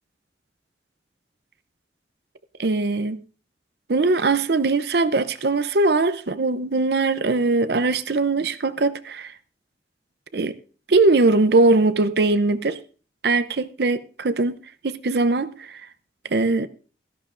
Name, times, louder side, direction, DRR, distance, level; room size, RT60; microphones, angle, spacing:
voice 1, 2.6-3.2 3.9-9.3 10.3-10.5 10.9-12.8 13.2-15.8 16.3-16.7, right 3 dB, 60° right, 0.6 m, -21 dB
16.5 x 14.0 x 2.5 m
head